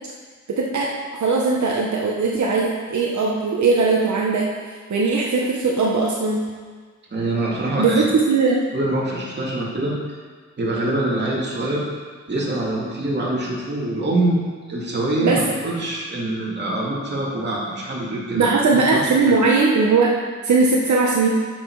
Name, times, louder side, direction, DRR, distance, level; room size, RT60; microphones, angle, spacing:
voice 1, 0.5-4.5 4.9-6.4 7.8-8.6 15.2-15.4 18.3-20.1 20.4-21.3, right 4 dB, 70° right, -3 dB, 1.1 m, -19 dB
voice 2, 7.1-8.1 8.7-10.0 10.6-11.9 12.3-14.4 14.7-19.4, right 1 dB, 35° right, -5 dB, 2.5 m, -24 dB
12.0 x 6.6 x 4.8 m, 1.5 s
wide cardioid pair, 165°, 29 cm